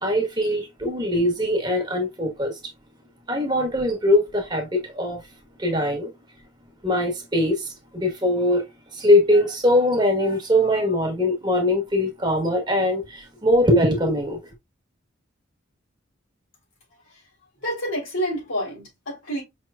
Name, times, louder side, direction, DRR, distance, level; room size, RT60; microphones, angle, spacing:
voice 1, 0.0-2.5 3.3-5.2 5.6-6.1 6.8-8.6 8.9-14.4, left 1 dB, 20° right, 1.2 m, -21 dB
voice 2, 17.6-19.4, equal, 75° left, 3.0 m, -28 dB
5.3 x 3.1 x 2.2 m
head